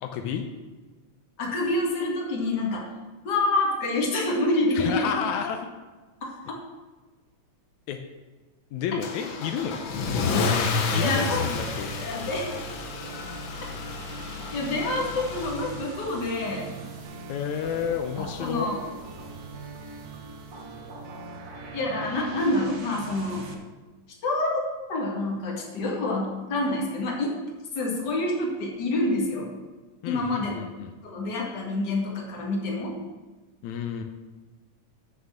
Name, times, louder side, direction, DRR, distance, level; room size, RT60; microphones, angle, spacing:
voice 1, 0.0-0.5 4.7-5.7 7.9-8.0 8.7-9.8 10.9-11.9 17.3-18.7 30.0-30.9 33.6-34.0, left 8 dB, 80° left, 5 dB, 2.1 m, -30 dB
voice 2, 1.4-2.9 3.2-5.1 6.5-6.6 11.0-11.5 12.0-12.6 14.5-16.7 18.2-18.8 21.7-23.5 24.2-24.5 24.9-27.4 27.8-29.5 30.0-30.5 31.0-33.0, left 2 dB, 40° left, -1 dB, 2.3 m, -27 dB
Car / Engine starting / Accelerating revving vroom, 9.0-16.1, left 4 dB, 60° left, 1.3 m, -30 dB
sound 1, 11.5-23.5, right 4 dB, 60° right, 0.9 m, -41 dB
9.3 x 6.5 x 7.1 m, 1.3 s
omnidirectional pair, 3.4 m